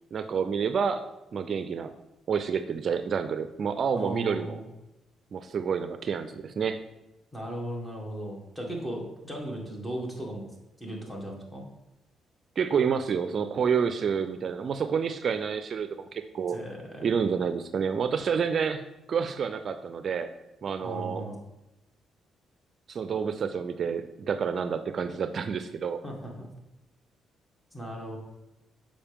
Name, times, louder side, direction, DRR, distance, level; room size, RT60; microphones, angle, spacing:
voice 1, 0.1-1.0 1.3-1.9 2.3-4.6 5.3-6.8 12.6-16.6 17.0-20.3 20.6-21.2 22.9-26.0, right 6 dB, 50° right, 9 dB, 0.4 m, -29 dB
voice 2, 3.9-4.7 7.3-11.6 16.5-17.1 20.8-21.4 26.0-26.5 27.7-28.2, equal, 15° left, -1 dB, 1.9 m, -37 dB
7.0 x 5.1 x 3.5 m, 0.98 s
cardioid pair, 90°, 0 cm